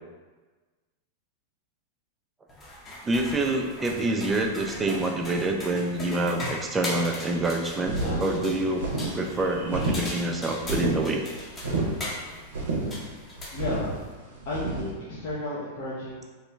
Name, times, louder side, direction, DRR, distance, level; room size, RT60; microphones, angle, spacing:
sound 1, 2.5-14.1, left 1 dB, 25° left, 0.8 m, -38 dB
voice 1, 3.0-8.9 9.1-11.2, right 2 dB, 20° right, 2 dB, 0.4 m, -27 dB
sound 2, 7.9-14.9, right 2 dB, 80° right, 0.6 m, -30 dB
voice 2, 13.5-13.9 14.4-16.3, left 1 dB, 55° left, -8 dB, 0.7 m, -33 dB
3.0 x 2.2 x 3.1 m, 1.3 s
hypercardioid pair, 100°, 0 cm